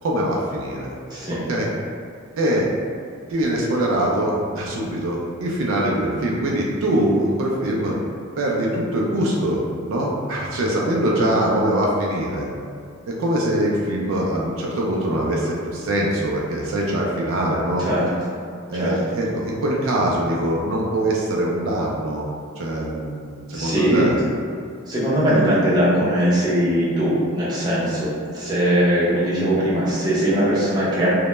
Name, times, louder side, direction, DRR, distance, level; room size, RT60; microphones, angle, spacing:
voice 1, 0.0-0.9 1.5-1.7 2.4-2.7 3.3-7.9 8.4-12.5 13.1-17.9 18.7-22.3 22.6-24.2 27.8-28.0, right 1 dB, 70° right, -3 dB, 0.3 m, -23 dB
voice 2, 23.5-24.1 24.9-31.1, equal, 20° right, -9 dB, 0.6 m, -20 dB
2.1 x 2.0 x 2.9 m, 2.2 s
head